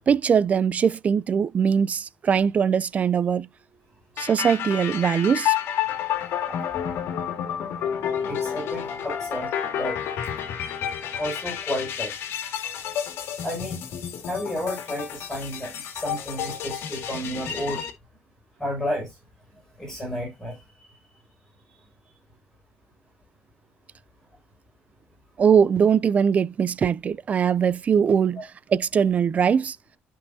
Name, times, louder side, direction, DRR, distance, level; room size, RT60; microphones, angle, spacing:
voice 1, 0.1-3.5 4.2-5.5 6.5-6.6 25.4-29.8, right 7 dB, 35° right, 0.4 m, -21 dB
sound 1, 4.2-17.9, left 9 dB, 75° left, 2.0 m, -30 dB
voice 2, 8.2-10.0 11.2-12.1 13.4-13.8 14.3-17.8 18.6-19.1 19.8-20.6, equal, 10° left, 5.7 m, -31 dB
12.5 x 5.6 x 2.7 m
cardioid pair, 135°, 4 cm